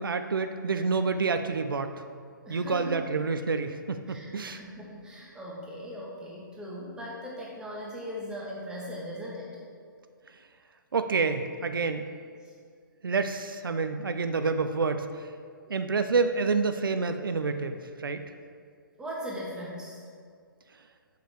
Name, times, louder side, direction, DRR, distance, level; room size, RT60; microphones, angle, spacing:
voice 1, 0.0-2.0 2.5-4.6 10.9-12.1 13.0-15.3 15.7-18.2, right 4 dB, 85° right, 8 dB, 0.4 m, -28 dB
voice 2, 2.4-3.0 4.1-9.5 12.4-12.5 15.7-15.8 19.0-20.0, equal, 5° right, -5 dB, 1.2 m, -39 dB
6.6 x 4.8 x 4.9 m, 2.1 s
hypercardioid pair, 135°, 11 cm